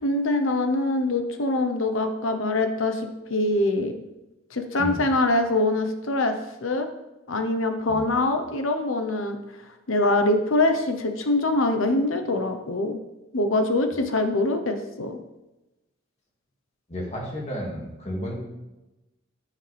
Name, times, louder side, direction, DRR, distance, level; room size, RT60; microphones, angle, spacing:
voice 1, 0.0-3.0 3.3-4.0 4.5-6.3 6.6-6.9 7.3-9.4 9.9-13.0 13.3-15.2, left 2 dB, 80° left, 6 dB, 1.0 m, -24 dB
voice 2, 16.9-18.4, equal, 35° left, -2 dB, 2.2 m, -32 dB
9.5 x 9.3 x 3.5 m, 1.0 s
head